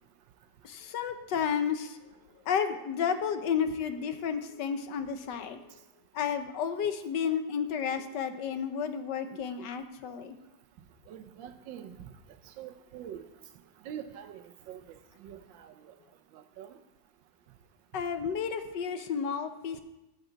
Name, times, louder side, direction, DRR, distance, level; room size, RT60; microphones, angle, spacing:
voice 1, 0.6-2.0 2.5-5.7 6.1-10.4 17.9-19.8, left 7 dB, 75° left, 9 dB, 1.4 m, -32 dB
voice 2, 11.1-12.1 12.6-13.3 13.8-14.8 15.2-15.9 16.3-16.8, right 9 dB, 90° right, 9 dB, 1.5 m, -44 dB
14.5 x 7.0 x 4.0 m, 0.95 s
omnidirectional pair, 2.0 m